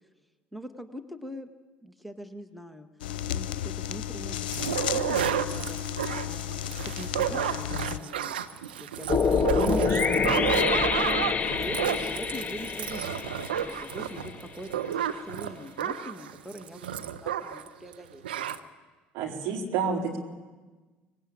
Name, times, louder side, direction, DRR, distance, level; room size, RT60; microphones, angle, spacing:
voice 1, 0.5-1.5 1.8-2.9 3.3-4.4 4.7-5.8 6.3-8.3 8.8-9.8 10.4-13.2 13.6-14.3 14.6-18.2, equal, ahead, 7 dB, 1.7 m, -43 dB
sound 1, 3.0-8.0, left 10 dB, 75° left, 0.7 m, -33 dB
sound 2, 4.5-17.7 17.9-18.0 18.2-18.6, right 9 dB, 80° right, 1.0 m, -31 dB
sound 3, 9.1-14.3, left 5 dB, 30° left, 1.6 m, -27 dB
voice 2, 9.3-10.3 19.1-20.2, right 4 dB, 65° right, 0 dB, 4.4 m, -30 dB
24.5 x 19.5 x 8.8 m, 1.3 s
hypercardioid pair, 60°, 5 cm